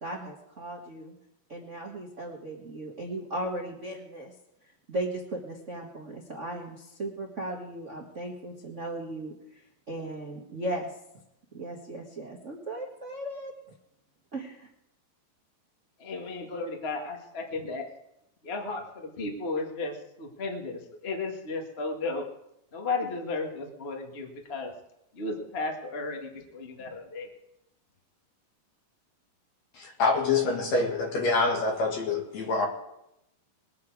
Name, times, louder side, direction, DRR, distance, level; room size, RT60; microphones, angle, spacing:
voice 1, 0.0-1.1 1.5-4.3 4.9-9.3 9.9-10.9 11.5-13.5 14.3-14.7, right 1 dB, 80° right, -1 dB, 0.6 m, -36 dB
voice 2, 16.0-17.8 18.4-22.2 22.7-24.7 25.1-27.3, left 3 dB, 35° left, 2 dB, 1.0 m, -34 dB
voice 3, 29.8-32.7, left 3 dB, 55° left, 1 dB, 2.9 m, -26 dB
21.0 x 8.5 x 4.7 m, 0.82 s
omnidirectional pair, 4.0 m